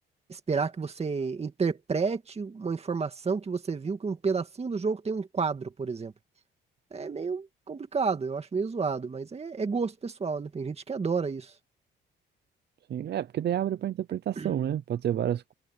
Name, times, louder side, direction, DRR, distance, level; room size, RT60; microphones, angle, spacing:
voice 1, 0.3-6.1 6.9-11.5 14.4-14.5, right 5 dB, 30° right, 2.0 m, -30 dB
voice 2, 12.9-15.5, right 10 dB, 55° right, 0.7 m, -29 dB
cardioid pair, 90°, 20 cm